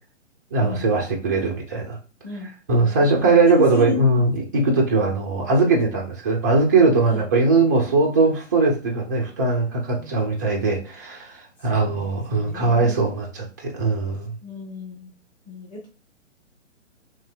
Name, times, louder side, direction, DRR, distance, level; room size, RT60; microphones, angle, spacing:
voice 1, 0.5-2.0 2.7-14.3, right 3 dB, 15° right, -1 dB, 0.4 m, -20 dB
voice 2, 3.5-4.2 7.0-7.2 10.0-10.2 11.7-13.0 14.4-15.1 15.5-15.9, left 4 dB, 20° left, -3 dB, 1.2 m, -32 dB
3.1 x 2.7 x 3.2 m, 0.34 s
figure-of-eight pair, 135°, 37 cm